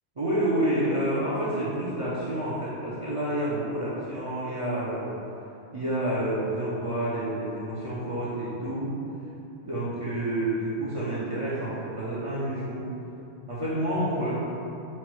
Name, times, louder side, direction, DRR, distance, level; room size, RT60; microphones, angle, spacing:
voice 1, 0.2-5.1 5.7-9.0 9.6-12.8 13.5-14.3, right 1 dB, 35° right, -9 dB, 0.6 m, -29 dB
4.3 x 2.3 x 4.4 m, 2.9 s
omnidirectional pair, 1.1 m